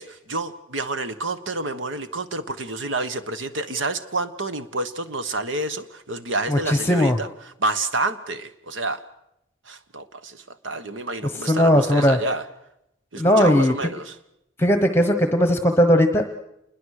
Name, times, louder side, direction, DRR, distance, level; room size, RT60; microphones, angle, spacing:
voice 1, 0.0-9.0 9.6-12.4 13.1-14.2, right 2 dB, 80° right, 10 dB, 1.3 m, -29 dB
voice 2, 6.5-7.2 11.5-12.2 13.1-13.7 14.6-16.4, equal, 10° left, 7 dB, 1.0 m, -18 dB
27.0 x 21.5 x 6.6 m, 0.84 s
head